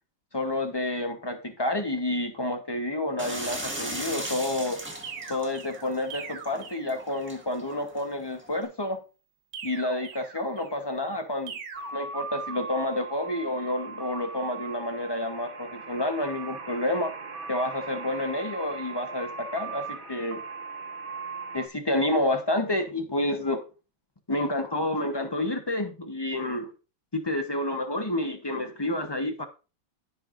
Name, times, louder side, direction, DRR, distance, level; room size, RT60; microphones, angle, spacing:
voice 1, 0.3-4.8 5.3-9.0 9.6-11.5 11.9-17.1 17.5-20.4 21.5-23.6 24.3-26.7 27.1-29.4, left 1 dB, 35° left, 6 dB, 0.4 m, -29 dB
sound 1, 3.2-8.6, right 1 dB, 5° right, 1.5 m, -38 dB
sound 2, 5.0-7.5 9.5-10.9 11.5-11.9, right 6 dB, 65° right, 1.7 m, -42 dB
sound 3, 11.7-21.7, right 4 dB, 45° right, 0.7 m, -39 dB
15.0 x 5.6 x 2.5 m, 0.32 s
omnidirectional pair, 2.1 m